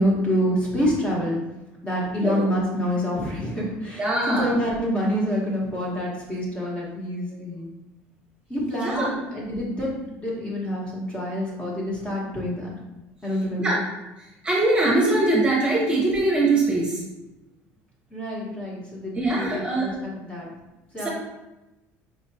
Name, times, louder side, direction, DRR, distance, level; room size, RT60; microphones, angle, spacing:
voice 1, 0.0-1.4 1.8-7.7 8.5-9.9 10.2-12.7 13.2-13.8 18.1-20.5 20.9-21.1, equal, 20° left, -4 dB, 1.4 m, -27 dB
voice 2, 2.2-2.5 4.0-4.5 7.3-7.4 8.8-9.1 13.6-13.8 14.4-17.0 19.1-19.9 21.0-21.1, right 2 dB, 20° right, -3 dB, 1.1 m, -22 dB
4.8 x 3.1 x 2.8 m, 1.0 s
cardioid pair, 120°, 6 cm